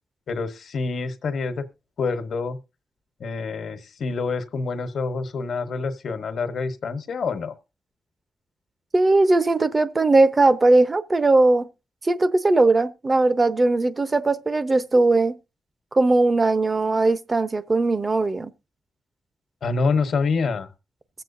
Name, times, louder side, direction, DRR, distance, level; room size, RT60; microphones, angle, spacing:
voice 1, 0.3-1.7 2.0-2.6 3.2-7.5 19.6-20.7, left 4 dB, 75° left, 1.2 m, -26 dB
voice 2, 8.9-11.7 12.0-15.4 15.9-18.5, right 2 dB, 35° right, 0.8 m, -19 dB
22.0 x 7.6 x 2.6 m
cardioid pair, 65°, 0 cm